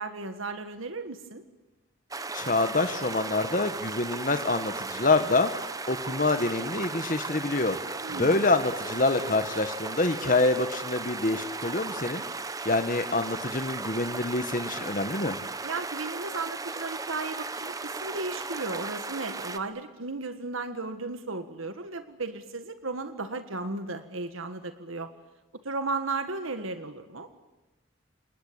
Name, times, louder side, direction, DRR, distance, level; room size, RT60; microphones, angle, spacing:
voice 1, 0.0-1.4 8.0-8.3 15.6-25.1 25.6-27.3, right 3 dB, 85° right, 9 dB, 1.7 m, -35 dB
sound 1, 2.1-19.6, right 3 dB, 15° right, 0.8 m, -36 dB
voice 2, 2.3-5.5 5.9-7.8 8.1-12.2 12.6-15.4, left 2 dB, 40° left, 9 dB, 1.2 m, -26 dB
28.0 x 20.5 x 8.8 m, 1.1 s
head